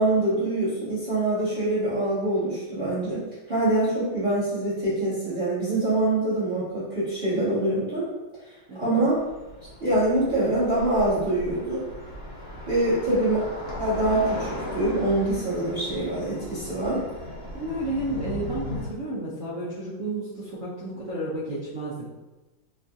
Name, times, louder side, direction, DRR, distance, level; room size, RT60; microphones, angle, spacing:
voice 1, 0.0-8.1 8.4-8.5 8.8-9.1 9.8-11.8 12.7-13.4 13.8-17.0, right 1 dB, 30° right, -12 dB, 1.1 m, -24 dB
sound 1, 9.0-18.8, left 1 dB, 75° left, 0.5 m, -37 dB
voice 2, 16.8-17.1 17.5-22.1, right 1 dB, 75° right, -7 dB, 0.7 m, -32 dB
3.5 x 2.3 x 2.6 m, 1.1 s
omnidirectional pair, 2.1 m